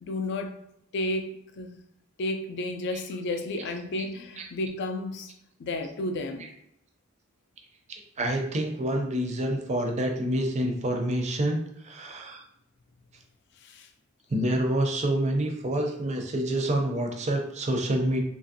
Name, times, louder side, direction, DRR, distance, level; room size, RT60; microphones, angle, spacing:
voice 1, 0.0-0.6 0.9-1.3 1.6-1.7 2.2-5.3 5.6-6.5 13.6-13.9, left 2 dB, 55° left, 7 dB, 0.4 m, -32 dB
voice 2, 7.9-12.4 14.3-18.2, right 1 dB, 30° right, 3 dB, 0.4 m, -27 dB
2.9 x 2.5 x 2.6 m, 0.76 s
head